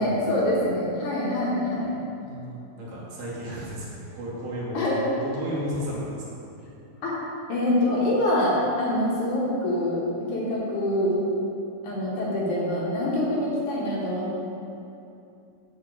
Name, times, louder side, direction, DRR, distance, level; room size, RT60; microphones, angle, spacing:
voice 1, 0.0-1.9 4.7-5.0 7.0-7.2 7.5-11.2 11.8-14.4, left 1 dB, 65° left, -6 dB, 2.6 m, -25 dB
voice 2, 2.2-6.4, equal, 70° right, -6 dB, 2.8 m, -33 dB
7.5 x 4.4 x 7.0 m, 2.7 s
omnidirectional pair, 4.1 m